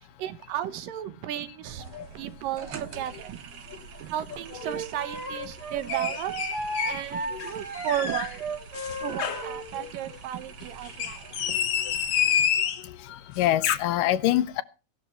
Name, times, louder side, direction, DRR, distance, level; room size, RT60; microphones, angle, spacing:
voice 1, 0.2-3.5 4.0-6.4 6.9-8.4 9.0-11.6, right 11 dB, 80° right, 13 dB, 2.7 m, -34 dB
sound 1, 1.6-12.4, right 8 dB, 60° right, 1.8 m, -45 dB
voice 2, 4.3-4.7 7.3-7.5 9.8-9.9 11.5-11.6 13.0-14.6, left 13 dB, 80° left, 14 dB, 2.4 m, -26 dB
Wind instrument woodwind instrument, 4.6-9.7, right 3 dB, 30° right, 3.6 m, -34 dB
sound 2, 5.9-7.0 7.4-8.3 8.7-9.5 10.9-12.9 13.4-13.8, left 8 dB, 60° left, 2.1 m, -28 dB
17.0 x 12.0 x 4.5 m, 0.34 s
omnidirectional pair, 4.0 m